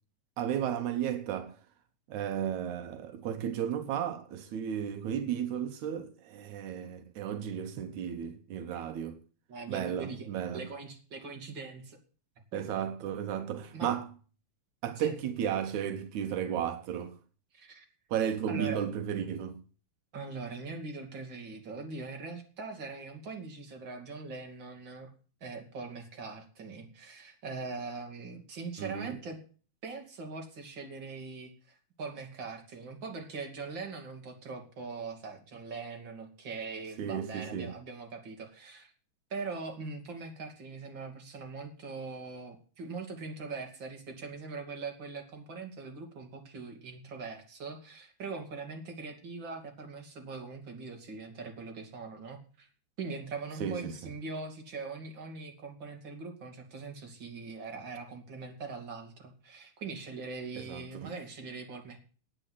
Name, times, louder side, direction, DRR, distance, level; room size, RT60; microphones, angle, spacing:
voice 1, 0.4-1.6 2.1-9.2 9.7-10.7 12.5-14.1 14.8-17.2 18.1-19.6 28.8-29.2 37.0-37.7 53.6-53.9 60.6-61.1, right 9 dB, 85° right, 2.4 m, -34 dB
voice 2, 9.5-10.3 10.5-12.0 12.5-12.6 13.7-14.0 15.0-15.1 17.5-17.9 18.5-18.8 20.1-25.1 25.4-29.4 29.8-38.9 39.3-52.7 53.0-62.0, right 4 dB, 40° right, 3.4 m, -41 dB
10.5 x 8.9 x 8.3 m
omnidirectional pair, 3.3 m